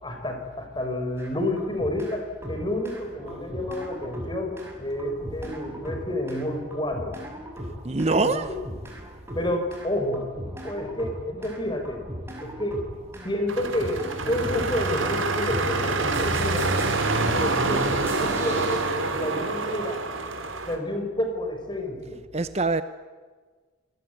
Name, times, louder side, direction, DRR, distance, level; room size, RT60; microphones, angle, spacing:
voice 1, 0.0-7.2 8.0-8.3 9.4-10.3 10.6-12.0 12.4-12.9 13.2-16.7 17.3-20.0 20.7-22.2, left 1 dB, 25° left, 5.3 m, -29 dB
sound 1, 1.2-2.1 2.4-18.8, equal, 15° right, 6.5 m, -39 dB
voice 2, 7.8-8.6 22.3-22.8, right 3 dB, 35° right, 0.8 m, -24 dB
sound 2, 13.5-20.8, right 3 dB, 85° right, 3.8 m, -26 dB
28.0 x 20.0 x 9.4 m
head